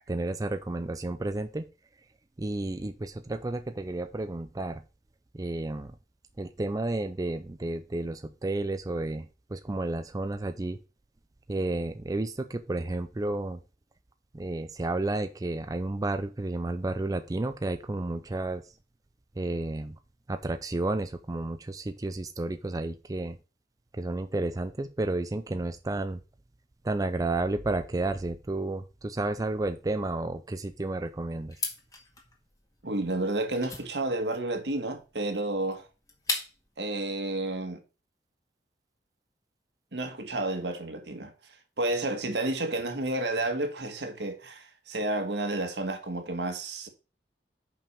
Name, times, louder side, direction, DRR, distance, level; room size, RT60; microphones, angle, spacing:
voice 1, 0.1-1.7 2.4-4.8 5.3-5.9 6.4-10.8 11.5-13.6 14.3-18.6 19.4-20.0 20.3-23.4 24.0-26.2 26.8-31.5, right 2 dB, 20° right, 0.4 m, -31 dB
sound 1, 31.5-36.8, left 3 dB, 20° left, 1.8 m, -38 dB
voice 2, 32.8-35.8 36.8-37.8 39.9-41.3 41.8-46.9, right 2 dB, 75° right, 1.5 m, -31 dB
5.7 x 5.4 x 6.7 m
head